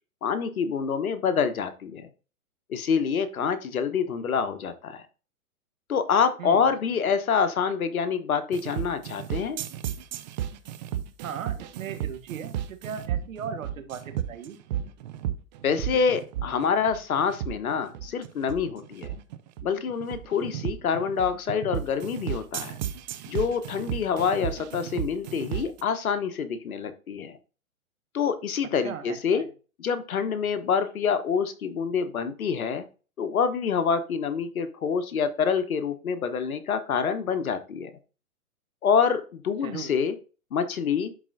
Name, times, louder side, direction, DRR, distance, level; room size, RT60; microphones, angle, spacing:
voice 1, 0.2-2.1 2.7-5.0 5.9-9.6 15.6-19.2 19.6-22.8 23.3-27.4 28.1-29.4 29.8-32.8 33.2-37.9 38.8-40.2 40.5-41.1, left 6 dB, 75° left, 10 dB, 1.2 m, -26 dB
sound 1, 8.5-25.8, right 10 dB, 35° right, 0.6 m, -34 dB
voice 2, 11.2-14.6 28.8-29.5 39.6-39.9, right 7 dB, 65° right, 8 dB, 1.5 m, -37 dB
11.0 x 4.3 x 2.6 m, 0.35 s
hypercardioid pair, 135°, 43 cm